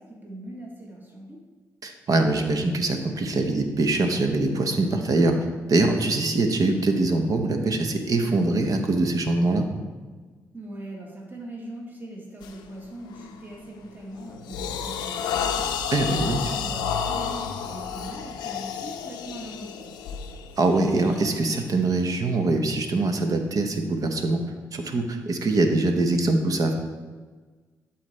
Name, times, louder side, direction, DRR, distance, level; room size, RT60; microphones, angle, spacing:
voice 1, 0.0-1.4 10.5-15.7 16.2-19.9, right 1 dB, 25° right, -1 dB, 1.7 m, -40 dB
voice 2, 1.8-5.4 5.7-9.7 15.9-16.4 20.6-24.4 24.7-26.7, right 2 dB, 55° right, 5 dB, 0.9 m, -23 dB
sound 1, 12.4-12.6 13.1-13.4 13.9-22.0, left 7 dB, 90° left, 0.5 m, -31 dB
11.5 x 4.1 x 3.2 m, 1.4 s
supercardioid pair, 50°, 7 cm